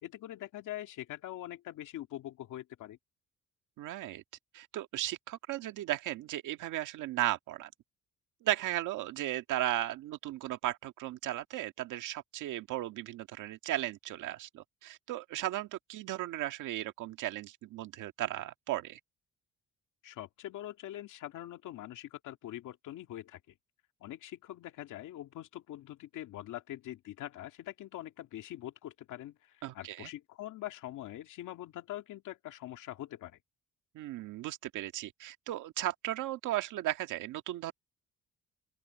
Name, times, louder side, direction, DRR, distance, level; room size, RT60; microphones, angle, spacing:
voice 1, 0.0-3.0 20.0-23.5 24.0-33.4, left 13 dB, 85° left, 2.2 m, -43 dB
voice 2, 3.8-4.2 4.5-7.7 8.4-19.0 29.6-30.1 33.9-37.7, right 14 dB, 90° right, 1.8 m, -36 dB
open air
cardioid pair, 90°, 30 cm